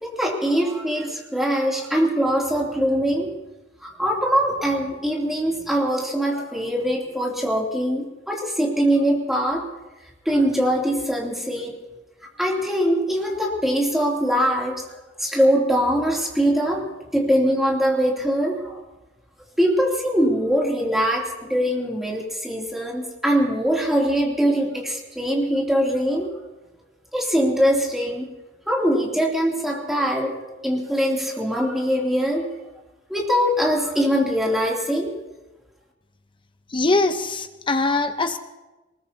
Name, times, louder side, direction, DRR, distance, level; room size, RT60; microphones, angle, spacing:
voice 1, 0.0-3.3 3.8-9.7 10.2-11.8 12.4-14.8 15.2-16.9 17.1-18.8 19.6-26.4 27.1-28.3 28.7-30.3 30.6-32.5 33.1-35.1, equal, ahead, -3 dB, 2.9 m, -22 dB
voice 2, 36.7-38.4, left 3 dB, 25° left, 7 dB, 0.9 m, -22 dB
23.0 x 20.5 x 2.8 m, 1.1 s
head